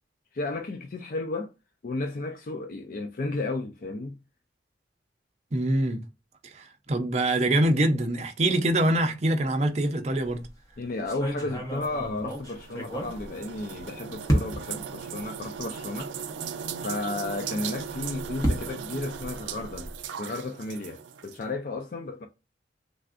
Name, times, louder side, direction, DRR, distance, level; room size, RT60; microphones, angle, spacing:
voice 1, 0.3-1.5 1.8-4.2 10.8-16.1 16.8-19.9 20.2-22.3, left 2 dB, 50° left, 0.4 m, -33 dB
voice 2, 5.5-6.0 6.4-10.4, right 1 dB, 35° right, 0.5 m, -24 dB
sound 1, 10.2-10.5 11.1-13.8 14.3-14.8 15.6-15.7 16.0-16.1 17.7-20.0, equal, 20° left, 0.9 m, -31 dB
sound 2, 11.8-21.4, right 7 dB, 85° right, 0.4 m, -38 dB
3.4 x 2.5 x 2.4 m
head